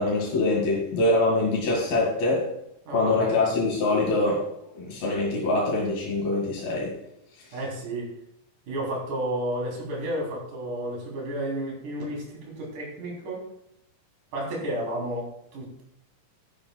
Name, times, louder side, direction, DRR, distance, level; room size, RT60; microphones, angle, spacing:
voice 1, 0.0-2.5 2.9-4.5 4.7-6.9, left 2 dB, 85° left, -3 dB, 4.0 m, -24 dB
voice 2, 2.9-3.6 7.5-8.1 8.7-13.5 14.3-15.8, right 1 dB, 60° right, -3 dB, 4.8 m, -32 dB
13.5 x 10.5 x 2.3 m, 0.77 s
omnidirectional pair, 4.2 m